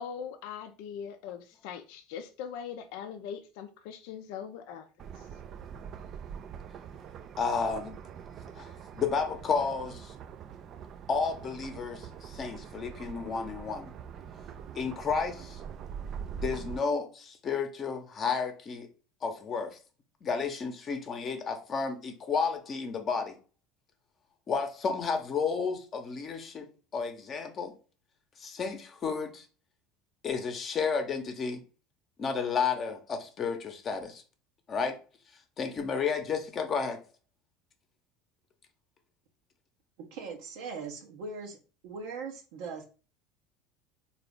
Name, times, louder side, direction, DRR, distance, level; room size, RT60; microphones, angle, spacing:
voice 1, 0.0-4.9 5.2-5.3, left 8 dB, 65° left, 0.4 m, -41 dB
sound 1, 5.0-16.8, right 7 dB, 50° right, 0.4 m, -43 dB
voice 2, 7.4-7.9 8.9-10.0 11.1-12.0 12.4-13.9 14.8-15.4 16.3-17.1 17.4-18.9 19.2-19.7 20.2-23.3 24.5-26.7 26.9-27.7 28.4-29.4 30.2-31.6 32.2-34.1 34.7-34.9 35.6-37.0, left 5 dB, 40° left, 0.8 m, -31 dB
voice 3, 40.1-41.6 41.8-42.8, right 4 dB, 70° right, 0.7 m, -40 dB
3.7 x 2.4 x 3.5 m
hypercardioid pair, 75°, 0 cm